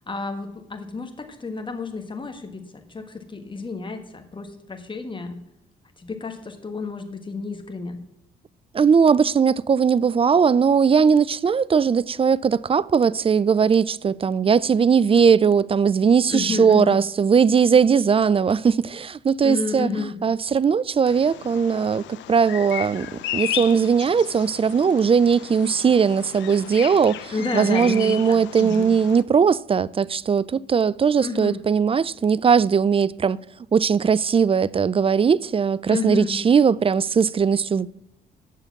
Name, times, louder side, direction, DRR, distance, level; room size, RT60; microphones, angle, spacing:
voice 1, 0.0-2.6 2.9-5.4 6.0-8.0 16.3-17.0 19.4-20.2 27.3-28.9 31.2-31.6 35.9-36.4, left 3 dB, 25° left, 1.5 m, -30 dB
voice 2, 8.7-22.0 22.3-23.1 23.3-33.4 33.7-37.9, right 6 dB, 30° right, 0.4 m, -19 dB
Bird vocalization bird call bird song, 21.1-29.2, left 13 dB, 75° left, 0.6 m, -35 dB
8.3 x 6.7 x 7.1 m
supercardioid pair, 55°, 19 cm